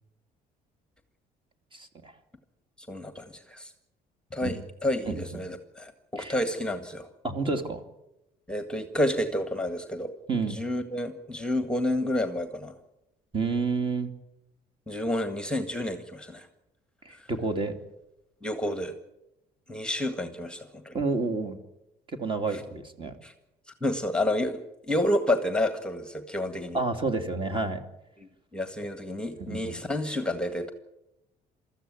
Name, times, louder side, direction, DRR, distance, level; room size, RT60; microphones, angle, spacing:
voice 1, 1.7-2.1 4.4-4.6 5.1-5.4 6.2-6.3 7.2-7.8 10.3-10.6 13.3-14.1 17.0-17.7 20.9-21.6 22.1-23.1 26.7-27.8 29.4-29.8, right 3 dB, 30° right, 8 dB, 2.7 m, -29 dB
voice 2, 2.8-3.7 4.3-7.1 8.5-10.1 10.5-12.7 14.9-16.5 17.1-17.3 18.4-18.9 19.7-20.9 22.5-22.6 23.2-23.3 23.8-26.8 28.2-30.7, left 1 dB, 5° left, 8 dB, 1.8 m, -30 dB
24.0 x 14.0 x 9.6 m, 0.91 s
cardioid pair, 110°, 17 cm